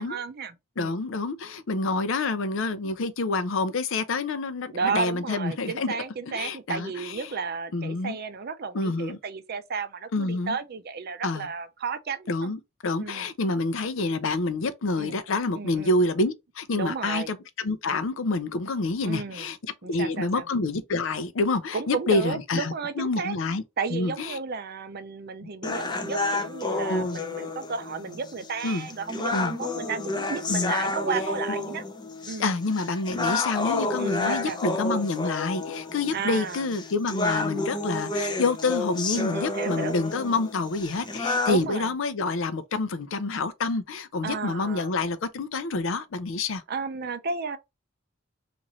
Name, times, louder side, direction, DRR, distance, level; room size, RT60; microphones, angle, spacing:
voice 1, 0.0-1.0 4.7-12.5 13.0-13.3 15.0-15.2 15.5-15.9 16.8-17.3 19.0-19.5 19.8-20.4 21.7-23.4 23.8-31.8 32.2-32.5 34.0-34.6 36.1-36.7 39.1-39.9 41.5-41.9 44.2-44.9 46.7-47.6, right 5 dB, 50° right, 0.5 m, -33 dB
voice 2, 0.8-6.0 6.3-7.3 7.7-8.2 8.7-9.2 10.1-10.6 11.2-11.5 12.3-19.6 19.8-23.6 23.9-24.4 25.7-25.8 26.9-27.2 28.6-28.9 29.3-29.6 30.5-30.7 32.4-46.6, left 3 dB, 65° left, 0.5 m, -28 dB
sound 1, 25.6-41.6, left 3 dB, 20° left, 0.6 m, -30 dB
3.0 x 2.5 x 4.0 m
head